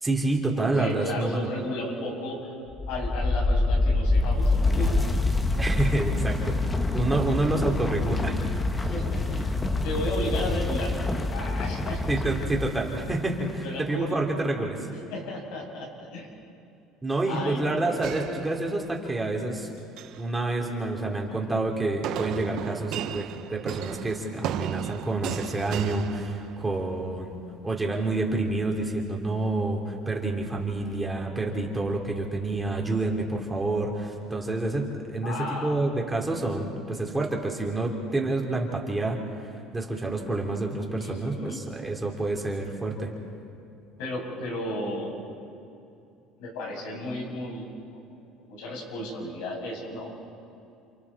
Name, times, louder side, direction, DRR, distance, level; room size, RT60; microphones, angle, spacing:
voice 1, 0.0-1.5 5.6-6.6 6.9-8.4 12.1-14.8 17.0-19.7 20.2-39.2 39.7-43.1, right 2 dB, 15° right, -1 dB, 3.6 m, -28 dB
voice 2, 0.6-2.5 2.9-5.0 8.8-9.5 9.8-10.9 11.3-12.0 13.6-14.2 15.1-16.3 17.3-17.8 35.2-35.8 41.0-41.6 44.0-45.1 46.4-47.6 47.9-48.0 48.5-50.1, left 1 dB, 80° left, -3 dB, 7.5 m, -34 dB
sound 1, 2.7-13.5, left 2 dB, 20° left, 1.5 m, -26 dB
sound 2, 18.0-19.1 19.8-20.3 22.0-26.9, right 10 dB, 65° right, 1.1 m, -35 dB
30.0 x 27.0 x 4.4 m, 2.6 s
supercardioid pair, 100°, 0 cm